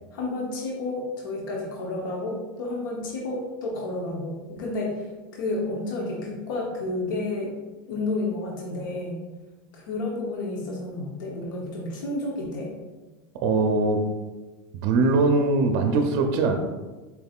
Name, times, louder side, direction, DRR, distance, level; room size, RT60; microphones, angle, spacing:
voice 1, 0.1-7.6 7.9-9.2 9.7-12.7, left 2 dB, 75° left, -1 dB, 0.8 m, -31 dB
voice 2, 13.4-14.0 14.7-16.6, right 3 dB, 55° right, 4 dB, 0.5 m, -21 dB
4.3 x 3.5 x 2.3 m, 1.2 s
hypercardioid pair, 115°, 11 cm